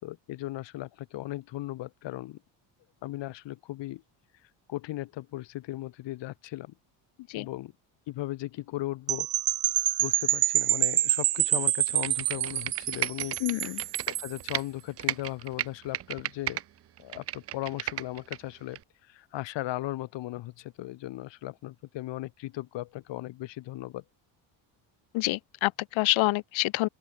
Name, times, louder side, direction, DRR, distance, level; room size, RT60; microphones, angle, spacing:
voice 1, 0.0-2.4 3.0-4.0 4.7-6.7 7.3-7.7 8.1-9.3 10.0-13.4 13.6-13.7 14.1-16.6 17.0-24.0, left 16 dB, 65° left, 4.9 m, -37 dB
sound 1, 9.1-14.4, right 13 dB, 50° right, 2.3 m, -27 dB
Computer keyboard, 11.9-14.6 15.0-16.6 17.0-18.4 18.8-18.9, right 12 dB, 35° right, 0.4 m, -33 dB
voice 2, 13.4-13.8 25.1-26.9, left 20 dB, 85° left, 2.8 m, -27 dB
open air
cardioid pair, 170°, 46 cm